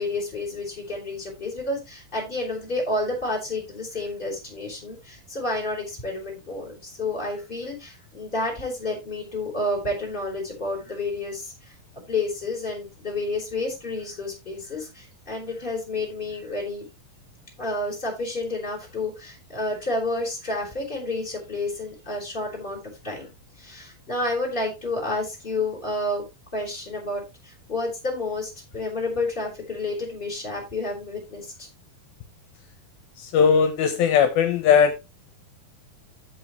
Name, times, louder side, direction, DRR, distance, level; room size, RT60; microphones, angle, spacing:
voice 1, 0.0-11.7 12.1-16.9 17.6-23.3 23.6-26.2 26.5-31.7, left 2 dB, 15° left, 4.3 m, -30 dB
voice 2, 33.3-35.0, left 7 dB, 75° left, 2.7 m, -18 dB
15.0 x 5.4 x 3.1 m
omnidirectional pair, 4.3 m